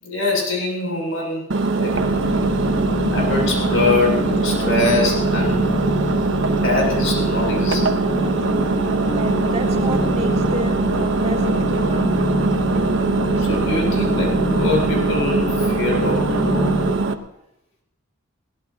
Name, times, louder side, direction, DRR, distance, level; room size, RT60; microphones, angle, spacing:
voice 1, 0.0-1.4 1.8-2.1 3.1-5.7 6.6-7.9 13.4-16.7, left 2 dB, 70° left, -1 dB, 7.3 m, -23 dB
Engine, 1.5-17.1, right 3 dB, 65° right, 1.0 m, -22 dB
sound 1, 1.9-16.9, equal, 40° left, 1.2 m, -25 dB
voice 2, 9.0-12.2, right 1 dB, 30° right, -1 dB, 2.6 m, -31 dB
22.5 x 17.5 x 2.9 m, 0.78 s
head